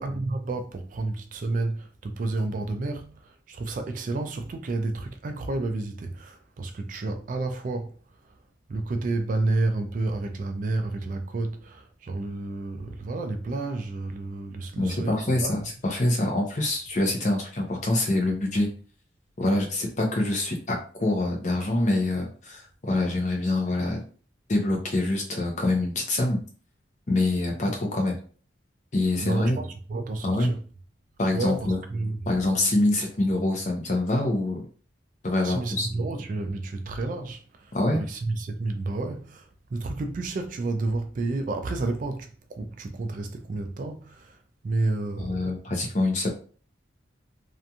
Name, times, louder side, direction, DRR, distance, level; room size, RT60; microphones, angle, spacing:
voice 1, 0.0-7.9 8.2-8.3 8.7-15.7 29.2-30.6 31.3-32.4 35.4-44.4 44.6-45.6, right 2 dB, 40° right, 0.3 m, -30 dB
voice 2, 14.8-18.7 19.4-24.0 24.5-26.4 27.1-28.2 28.9-29.6 30.2-30.5 31.2-31.8 32.3-34.6 35.2-35.9 37.7-38.0 45.2-46.3, left 2 dB, 40° left, 0.6 m, -25 dB
2.8 x 2.5 x 2.3 m
head